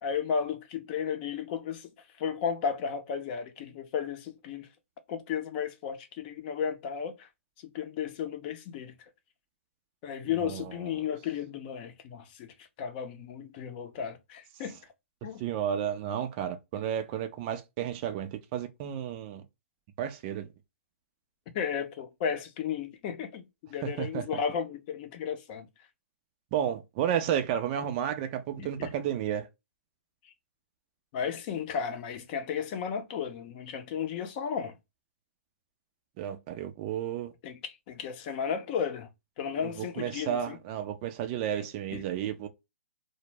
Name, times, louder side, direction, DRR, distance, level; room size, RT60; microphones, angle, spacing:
voice 1, 0.0-1.9 2.2-4.7 5.1-7.3 7.6-9.0 10.0-14.8 15.2-15.4 21.5-25.7 28.6-28.9 31.1-34.8 37.4-39.1 39.4-40.6 41.9-42.0, left 7 dB, 35° left, 0.6 m, -34 dB
voice 2, 10.4-10.9 15.2-19.4 20.0-20.5 23.8-24.3 26.5-29.5 36.2-37.3 39.6-42.5, right 9 dB, 35° right, 0.4 m, -32 dB
2.0 x 2.0 x 3.1 m
hypercardioid pair, 135°, 8 cm